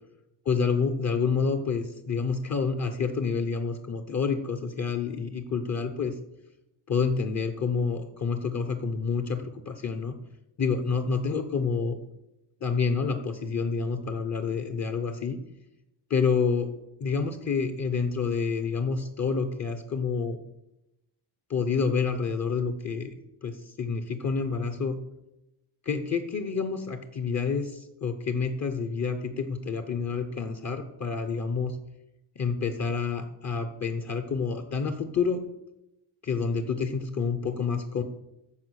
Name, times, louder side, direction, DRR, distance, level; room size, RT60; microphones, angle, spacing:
voice 1, 0.5-6.1 6.9-10.1 10.6-12.0 12.6-15.4 16.1-16.7 17.0-20.4 21.5-23.1 23.4-25.0 25.9-31.8 32.4-35.4 36.2-38.0, left 5 dB, 40° left, 8 dB, 0.8 m, -28 dB
14.0 x 4.8 x 6.3 m, 0.90 s
wide cardioid pair, 155°, 44 cm